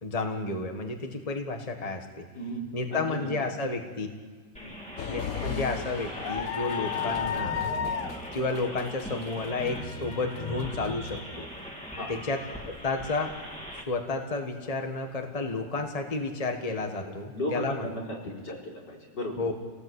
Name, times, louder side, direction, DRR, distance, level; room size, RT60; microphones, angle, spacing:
voice 1, 0.0-2.3 2.7-4.1 5.0-7.7 8.3-11.5 12.1-13.3 13.9-17.9 19.4-19.5, left 3 dB, 20° left, 4 dB, 1.6 m, -31 dB
voice 2, 2.3-3.3 4.6-4.8 12.0-12.1 17.0-19.4, equal, 75° left, -3 dB, 5.0 m, -36 dB
sound 1, 4.6-13.8, equal, 5° left, 2.6 m, -40 dB
sound 2, 5.0-11.1 11.6-11.7 12.8-13.1, left 8 dB, 60° left, 1.1 m, -34 dB
28.0 x 18.0 x 8.3 m, 1.5 s
omnidirectional pair, 1.8 m